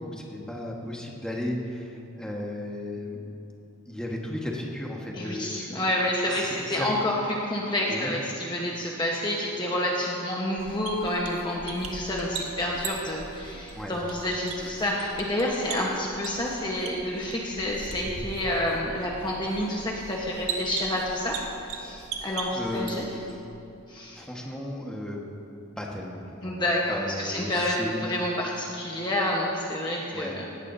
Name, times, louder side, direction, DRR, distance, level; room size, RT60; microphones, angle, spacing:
voice 1, 0.0-5.8 6.3-6.9 7.9-8.1 13.7-13.9 22.5-23.4 24.1-25.2 25.8-26.5 26.9-28.0 30.1-30.3, left 1 dB, 5° left, -2 dB, 1.5 m, -35 dB
voice 2, 5.1-23.1 23.9-24.2 26.4-30.4, left 1 dB, 20° left, -3 dB, 1.2 m, -29 dB
sound 1, 10.6-23.3, right 4 dB, 90° right, 1.6 m, -39 dB
17.5 x 17.5 x 2.8 m, 2.8 s
head